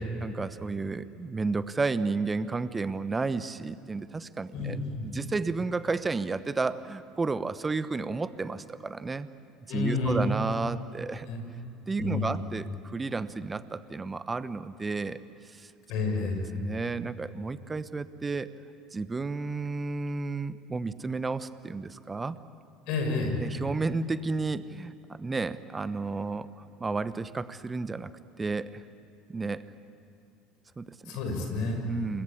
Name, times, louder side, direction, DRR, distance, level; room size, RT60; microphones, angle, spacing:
voice 1, 0.2-9.3 9.7-11.3 11.9-15.2 15.5-15.7 16.2-18.5 18.9-22.4 23.4-24.9 25.2-28.1 28.4-28.8 29.3-29.6 30.8-31.2 31.9-32.2, right 3 dB, 20° right, 14 dB, 1.1 m, -32 dB
voice 2, 4.5-5.1 9.7-10.2 11.3-11.4 12.0-12.4 15.9-16.4 22.9-23.3 31.1-31.8, left 3 dB, 60° left, 3 dB, 6.5 m, -30 dB
29.5 x 22.0 x 8.6 m, 2.8 s
figure-of-eight pair, 65°, 0 cm